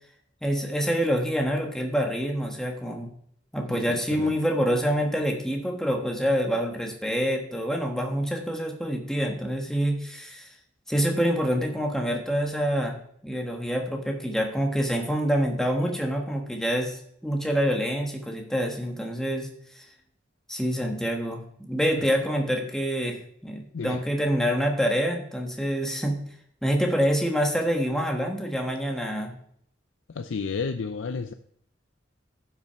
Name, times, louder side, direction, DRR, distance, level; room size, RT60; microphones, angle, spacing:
voice 1, 0.4-3.1 3.5-10.5 10.9-13.0 13.2-19.5 19.7-19.8 20.5-23.2 23.4-26.2 26.6-29.3, equal, 5° left, 2 dB, 1.3 m, -26 dB
voice 2, 3.7-4.4 21.9-22.1 23.7-24.0 30.1-31.3, left 5 dB, 85° left, 9 dB, 0.5 m, -32 dB
10.5 x 6.1 x 5.5 m, 0.69 s
head